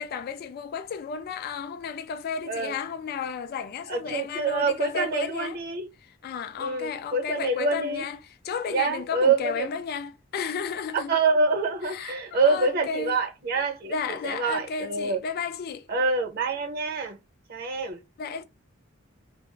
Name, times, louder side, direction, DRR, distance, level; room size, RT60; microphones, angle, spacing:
voice 1, 0.0-5.6 6.2-11.2 11.8-13.1 13.9-15.9 18.2-18.4, left 5 dB, 50° left, 0.3 m, -33 dB
voice 2, 3.9-5.9 6.6-8.1 8.7-9.7 11.1-15.2 15.9-17.2 17.5-18.0, right 3 dB, 50° right, 0.7 m, -26 dB
2.4 x 2.0 x 3.8 m
head